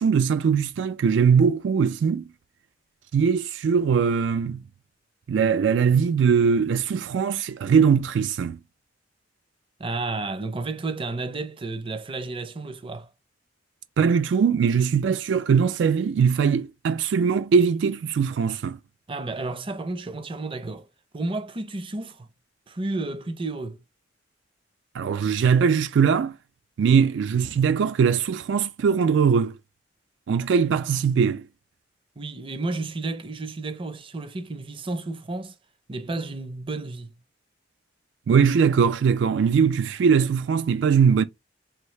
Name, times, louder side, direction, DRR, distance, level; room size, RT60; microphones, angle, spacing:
voice 1, 0.0-2.3 3.1-4.6 5.3-8.6 14.0-18.8 24.9-26.3 26.8-29.6 30.3-31.5 38.3-41.2, right 6 dB, 75° right, 0.3 m, -21 dB
voice 2, 9.8-13.1 19.1-20.9 21.1-22.3 22.7-23.8 32.2-35.5 35.9-37.1, right 2 dB, 30° right, 0.6 m, -32 dB
4.5 x 2.7 x 3.2 m
head